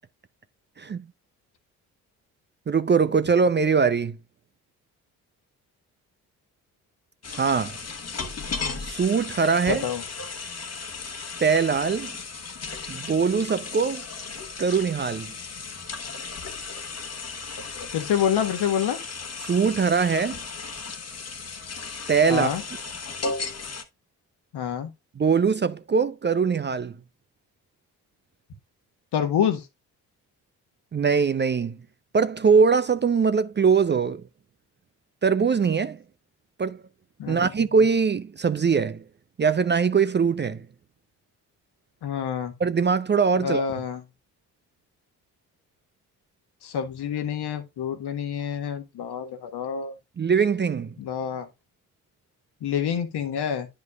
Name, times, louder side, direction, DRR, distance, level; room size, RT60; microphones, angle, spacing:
voice 1, 2.7-4.2 7.3-7.8 8.8-9.8 11.4-12.1 12.9-14.1 14.6-15.3 19.4-20.4 22.1-22.5 25.2-27.0 30.9-31.8 32.1-34.2 35.2-36.0 36.6-36.8 37.3-39.0 39.4-40.7 42.6-43.6 50.2-50.9, right 5 dB, 25° right, 0.5 m, -22 dB
sound 1, 7.2-23.8, left 4 dB, 35° left, 1.4 m, -35 dB
voice 2, 9.7-10.0 17.9-19.0 22.3-22.6 24.5-24.9 29.1-29.6 37.2-37.4 42.0-42.5 43.4-44.0 46.6-49.9 51.0-51.5 52.6-53.7, left 8 dB, 60° left, 1.5 m, -27 dB
10.5 x 5.2 x 2.4 m
hypercardioid pair, 45°, 43 cm